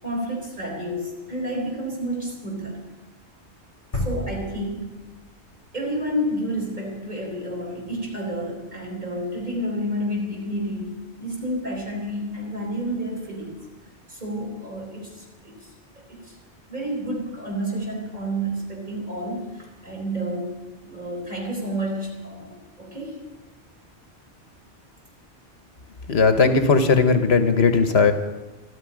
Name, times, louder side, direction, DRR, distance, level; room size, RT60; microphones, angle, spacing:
voice 1, 0.0-2.8 3.9-5.0 5.7-13.6 14.1-16.3 16.7-20.5 20.8-23.1, equal, 40° right, -2 dB, 4.3 m, -30 dB
sound 1, 3.9-5.8, left 2 dB, 45° left, 2.8 m, -32 dB
voice 2, 26.1-28.1, left 4 dB, 65° left, 9 dB, 1.3 m, -17 dB
13.0 x 9.8 x 9.9 m, 1.1 s
omnidirectional pair, 1.2 m